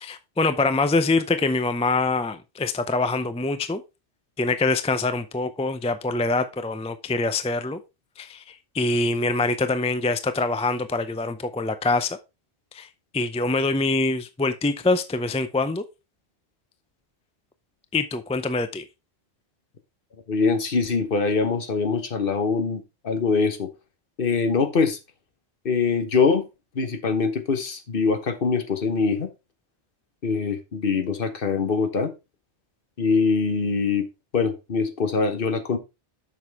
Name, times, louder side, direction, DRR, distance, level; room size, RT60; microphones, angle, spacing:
voice 1, 0.0-3.8 4.4-7.8 8.2-12.2 12.7-12.9 13.1-15.8 17.9-18.8, left 3 dB, 10° left, 0.3 m, -24 dB
voice 2, 20.3-23.7 24.2-25.0 25.6-26.4 26.7-29.3 30.2-32.1 33.0-34.1 34.3-35.8, left 4 dB, 55° left, 1.2 m, -23 dB
7.3 x 6.3 x 3.4 m
omnidirectional pair, 1.1 m